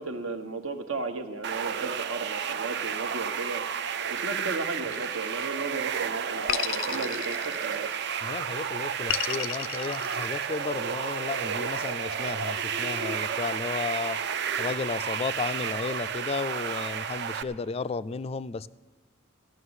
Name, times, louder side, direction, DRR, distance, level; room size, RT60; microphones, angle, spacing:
voice 1, 0.0-3.7 4.1-7.9, right 3 dB, 80° right, 1.1 m, -35 dB
sound 1, 1.4-17.4, right 7 dB, 60° right, 0.5 m, -32 dB
sound 2, 4.9-5.7 6.5-8.1 9.1-10.8, left 12 dB, 90° left, 0.5 m, -33 dB
voice 2, 8.2-14.2 14.6-18.7, left 4 dB, 30° left, 0.3 m, -33 dB
15.0 x 6.1 x 9.6 m
head